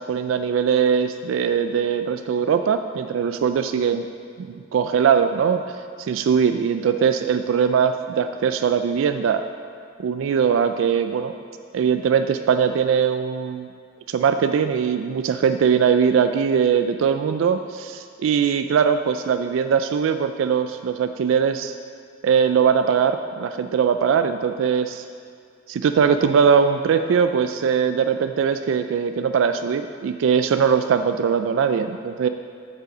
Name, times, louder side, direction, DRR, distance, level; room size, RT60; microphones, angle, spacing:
voice 1, 0.0-4.0 4.4-5.6 6.0-9.4 10.0-11.3 11.7-13.7 14.1-21.7 22.2-25.0 25.7-32.3, right 7 dB, 75° right, 9 dB, 0.3 m, -21 dB
7.7 x 5.5 x 6.1 m, 2.2 s
head